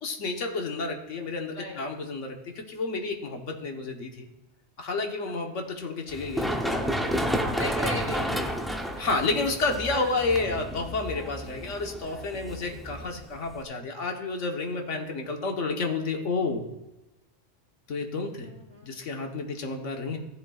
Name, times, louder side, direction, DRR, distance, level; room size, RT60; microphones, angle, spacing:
voice 1, 0.0-4.3 4.8-7.2 8.1-8.2 9.0-16.6 17.9-18.5 18.8-20.2, left 3 dB, 85° left, 3 dB, 1.5 m, -30 dB
Run, 6.1-13.6, equal, ahead, 0.5 m, -31 dB
voice 2, 7.4-8.3 9.9-10.3 18.4-19.1, equal, 30° left, 1 dB, 1.6 m, -37 dB
14.5 x 10.5 x 2.4 m, 1.0 s
omnidirectional pair, 1.2 m